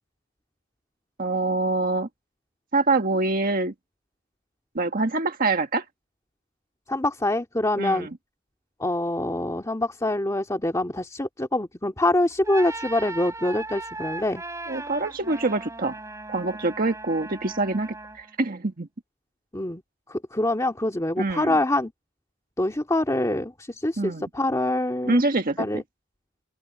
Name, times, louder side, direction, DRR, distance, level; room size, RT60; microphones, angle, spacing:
voice 1, 1.2-2.1 2.7-3.7 4.7-5.8 7.8-8.1 14.7-16.0 16.3-18.9 21.2-21.6 24.0-24.3 25.0-25.7, right 3 dB, 45° right, 1.6 m, -25 dB
voice 2, 6.9-8.1 8.8-14.4 19.5-19.8 20.1-21.9 22.6-25.3 25.6-25.8, left 1 dB, 15° left, 2.1 m, -25 dB
sound 1, 12.3-18.3, right 2 dB, 15° right, 5.9 m, -37 dB
open air
head